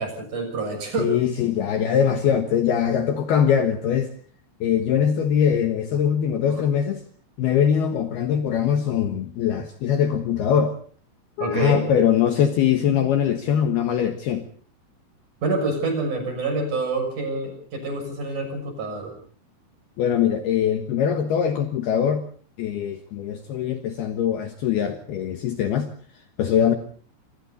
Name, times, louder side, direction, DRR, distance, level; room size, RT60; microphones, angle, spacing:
voice 1, 0.0-1.1 6.4-6.6 11.4-11.8 15.4-19.1, right 3 dB, 40° right, 5 dB, 7.7 m, -27 dB
voice 2, 1.0-4.1 4.6-7.0 7.4-10.8 11.4-14.5 20.0-22.2 22.6-25.9 26.4-26.7, left 8 dB, 65° left, 7 dB, 2.9 m, -22 dB
28.0 x 25.0 x 4.1 m, 0.43 s
omnidirectional pair, 5.7 m